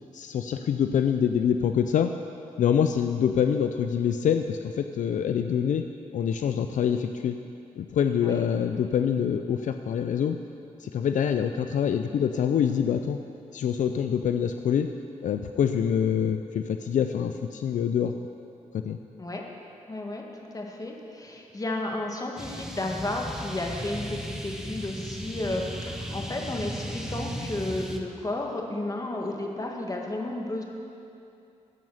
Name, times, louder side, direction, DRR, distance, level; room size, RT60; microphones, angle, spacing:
voice 1, 0.1-2.1 2.6-5.9 6.1-7.4 7.8-10.4 10.8-13.2 13.5-14.9 15.2-18.1 18.7-19.0, left 8 dB, 80° left, 7 dB, 0.4 m, -25 dB
voice 2, 19.9-20.2 20.5-30.6, left 2 dB, 30° left, 0 dB, 1.8 m, -32 dB
sound 1, 22.4-28.0, equal, 5° right, 1.1 m, -36 dB
12.5 x 5.5 x 7.8 m, 2.6 s
cardioid pair, 65°, 13 cm